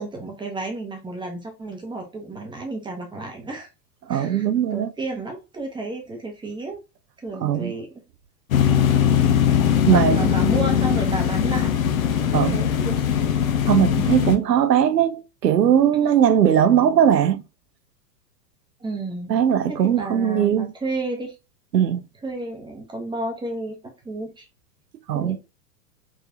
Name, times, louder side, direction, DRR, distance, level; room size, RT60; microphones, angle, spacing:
voice 1, 0.0-3.7 4.1-6.8 7.2-8.0 8.6-8.9 9.9-11.9 12.2-13.1 18.8-19.4 19.7-21.3 22.2-23.8 24.0-24.4 25.1-25.4, right 2 dB, 10° right, 1.0 m, -32 dB
voice 2, 4.1-4.9 7.4-7.7 9.9-10.3 12.3-12.6 13.7-17.4 19.3-20.7 21.7-22.0 25.1-25.4, right 9 dB, 75° right, 0.6 m, -19 dB
sound 1, 8.5-14.4, left 9 dB, 55° left, 0.8 m, -20 dB
3.5 x 3.4 x 2.7 m
figure-of-eight pair, 95°, 49 cm